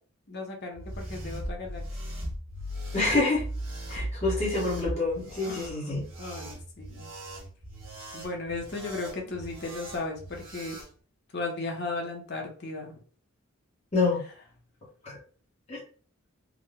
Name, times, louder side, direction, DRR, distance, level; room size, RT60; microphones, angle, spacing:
voice 1, 0.3-1.8 4.0-4.1 5.4-7.1 8.1-10.8 11.3-12.9, left 3 dB, 55° left, 1 dB, 1.0 m, -36 dB
sound 1, 0.7-10.9, right 1 dB, 65° right, 1.5 m, -38 dB
voice 2, 2.9-3.4 3.9-6.0 13.9-14.2 15.7-15.8, left 3 dB, 30° left, -5 dB, 1.1 m, -27 dB
3.6 x 2.2 x 3.6 m, 0.41 s
head